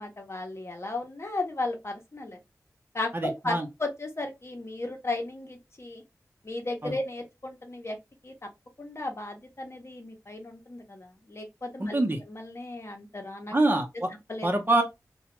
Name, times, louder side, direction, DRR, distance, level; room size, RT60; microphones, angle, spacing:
voice 1, 0.0-2.4 2.9-6.0 6.4-8.0 8.2-8.3 8.8-12.0 12.3-13.5 14.3-14.5, left 2 dB, 45° left, 0.8 m, -35 dB
voice 2, 3.1-3.7 6.8-6.9 11.8-12.2 13.5-14.1 14.4-14.8, right 2 dB, 35° right, 0.8 m, -25 dB
2.4 x 2.3 x 3.0 m
cardioid pair, 45°, 6 cm